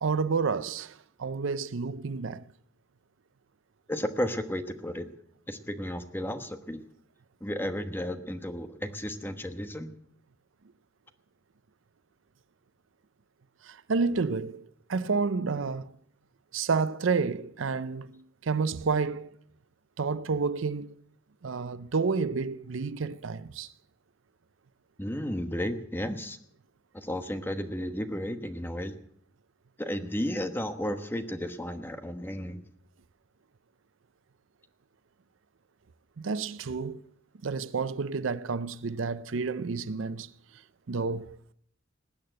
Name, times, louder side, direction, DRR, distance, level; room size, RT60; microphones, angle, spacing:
voice 1, 0.0-2.4 13.6-15.9 16.5-19.3 20.0-21.0 21.4-23.7 36.2-37.0 37.4-40.3 40.9-41.4, right 4 dB, 70° right, 0.6 m, -30 dB
voice 2, 3.9-5.1 5.5-6.8 7.4-9.9 25.0-26.4 26.9-29.0 29.8-32.6, equal, 10° left, 1.1 m, -33 dB
19.5 x 8.7 x 7.6 m
head